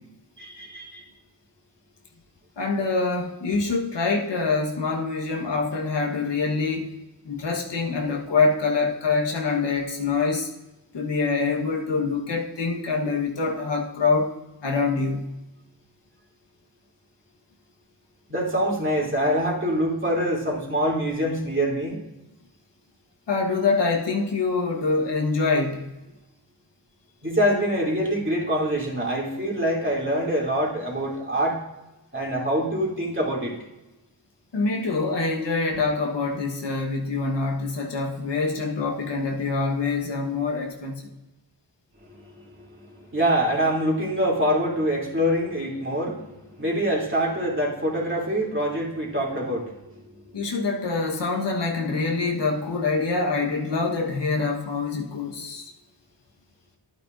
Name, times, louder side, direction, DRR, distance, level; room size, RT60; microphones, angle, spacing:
voice 1, 0.4-1.0 18.3-22.0 27.2-31.6 32.1-33.5 42.0-46.3 46.6-50.3, equal, 25° right, -4 dB, 3.0 m, -25 dB
voice 2, 2.6-6.9 7.2-10.5 10.9-14.3 14.6-15.4 23.3-25.9 34.5-41.1 50.3-55.7, left 4 dB, 70° left, 1 dB, 1.4 m, -25 dB
11.0 x 8.7 x 2.6 m, 1.0 s
cardioid pair, 50°, 44 cm